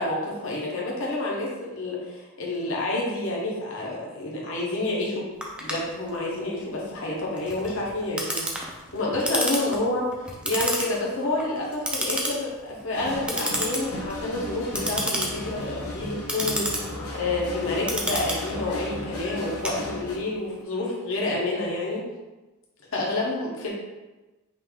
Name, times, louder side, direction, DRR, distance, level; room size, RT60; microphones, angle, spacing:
voice 1, 0.0-5.3 5.6-8.5 8.9-10.1 10.4-22.1 22.9-23.7, left 2 dB, 60° left, -3 dB, 1.1 m, -29 dB
Clock, 5.4-20.3, right 1 dB, 5° right, 0.5 m, -31 dB
sound 1, 12.9-20.2, left 1 dB, 85° left, 0.9 m, -35 dB
5.4 x 2.6 x 3.7 m, 1.1 s
head